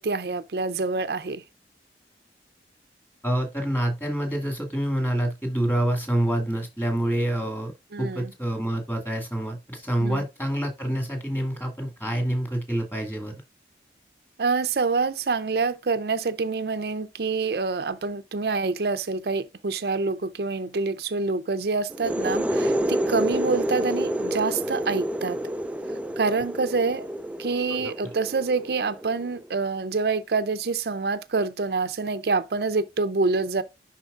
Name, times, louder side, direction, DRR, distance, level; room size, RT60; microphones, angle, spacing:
voice 1, 0.0-1.4 7.9-8.3 10.0-10.2 14.4-25.4 26.2-27.1 27.4-33.6, right 4 dB, 65° right, 0.5 m, -26 dB
voice 2, 3.2-7.7 8.0-13.3 27.7-27.9, right 1 dB, 10° left, 2.0 m, -27 dB
sound 1, 21.9-29.5, equal, 10° right, 0.3 m, -28 dB
11.0 x 4.1 x 2.4 m
head